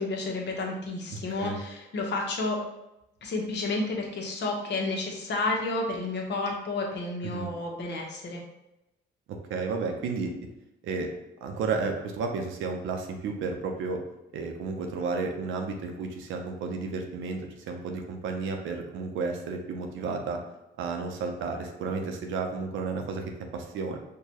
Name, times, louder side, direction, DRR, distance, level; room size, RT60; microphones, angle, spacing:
voice 1, 0.0-2.6 3.2-8.4, left 2 dB, 60° left, 0 dB, 0.9 m, -31 dB
voice 2, 1.1-1.6 7.2-7.5 9.3-10.3 10.8-11.1 11.4-14.0 14.3-20.4 20.8-23.2 23.5-24.0, right 4 dB, 85° right, 4 dB, 0.6 m, -32 dB
4.7 x 2.3 x 2.8 m, 0.88 s
cardioid pair, 90°, 20 cm